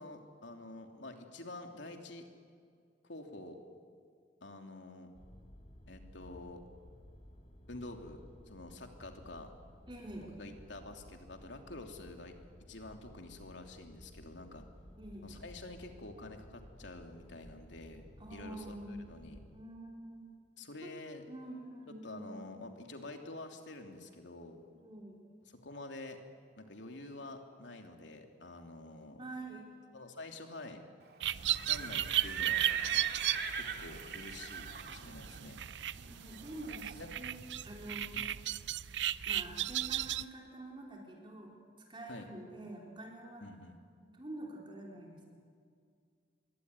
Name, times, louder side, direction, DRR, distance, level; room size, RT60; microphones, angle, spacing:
voice 1, 0.0-2.2 3.0-3.6 4.4-5.1 5.9-6.6 7.7-9.5 10.2-12.3 12.7-14.7 15.2-19.4 20.6-21.2 21.9-24.6 25.6-26.2 26.6-29.2 29.9-30.8 31.5-32.6 33.5-35.6 37.0-37.1 38.1-38.3 42.1-42.3 43.4-43.8, left 2 dB, 80° left, 4 dB, 3.1 m, -48 dB
sound 1, 5.1-19.6, equal, 35° left, 2.1 m, -56 dB
voice 2, 9.9-10.3 15.0-15.3 18.2-19.1 19.5-20.3 20.8-20.9 21.3-22.4 24.7-25.2 29.2-29.6 36.1-38.1 39.3-41.6 41.9-43.4 44.0-45.2, right 1 dB, 25° right, -1 dB, 4.1 m, -47 dB
sound 2, 31.2-40.2, right 12 dB, 75° right, 0.6 m, -36 dB
Livestock farm animals working animals, 31.4-37.2, right 8 dB, 60° right, 2.4 m, -39 dB
26.0 x 23.0 x 9.8 m, 2.2 s
head